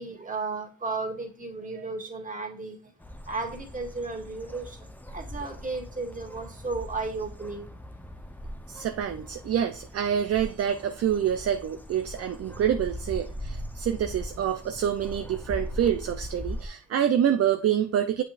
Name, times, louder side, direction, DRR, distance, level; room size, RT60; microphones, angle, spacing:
voice 1, 0.0-2.8 3.3-4.9 5.1-7.7, right 3 dB, 25° right, 1 dB, 2.1 m, -34 dB
sound 1, 3.0-16.7, left 1 dB, 5° left, 0.9 m, -40 dB
voice 2, 8.7-18.2, right 9 dB, 50° right, 7 dB, 0.6 m, -27 dB
7.2 x 5.7 x 2.5 m, 0.41 s
cardioid pair, 90°, 30 cm